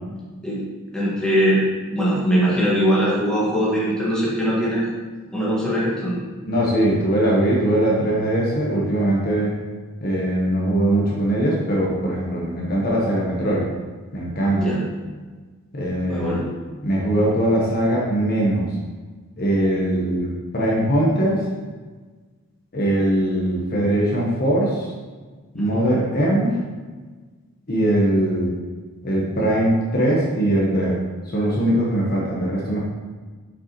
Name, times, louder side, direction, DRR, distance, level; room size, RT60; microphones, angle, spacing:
voice 1, 0.9-1.6 1.9-4.8 5.3-6.2 14.6-14.8 16.1-16.4 25.6-25.8, equal, 5° left, -7 dB, 1.6 m, -21 dB
voice 2, 6.5-9.5 10.0-13.7 14.1-14.6 15.7-16.5 16.8-18.7 19.4-21.5 22.7-24.9 25.5-26.6 27.7-28.5 29.0-31.0 31.3-32.8, right 1 dB, 45° left, -4 dB, 1.0 m, -21 dB
6.9 x 5.2 x 3.0 m, 1.4 s
head